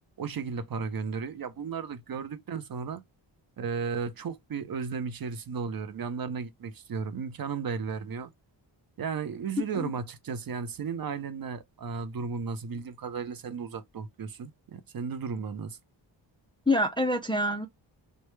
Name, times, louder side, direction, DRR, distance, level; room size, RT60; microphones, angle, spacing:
voice 1, 0.2-3.0 3.6-8.3 9.0-15.8, right 5 dB, 50° right, 0.6 m, -34 dB
voice 2, 9.6-9.9 16.7-17.7, left 1 dB, 10° left, 0.4 m, -26 dB
3.0 x 2.1 x 3.2 m
cardioid pair, 80°, 46 cm